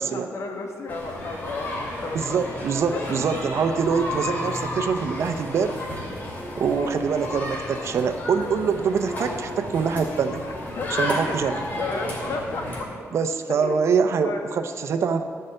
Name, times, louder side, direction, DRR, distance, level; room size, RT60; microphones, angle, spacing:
voice 1, 0.0-2.4 2.9-3.2 6.7-6.9 10.8-12.7 13.5-13.8 14.2-14.5, left 3 dB, 65° left, 3 dB, 1.4 m, -33 dB
sound 1, 0.9-12.8, left 1 dB, 35° left, 2.6 m, -32 dB
voice 2, 2.1-5.8 6.6-10.4 11.0-11.6 13.1-15.2, right 6 dB, 60° right, 9 dB, 0.7 m, -24 dB
13.5 x 5.6 x 7.9 m, 2.2 s
wide cardioid pair, 170°, 5 cm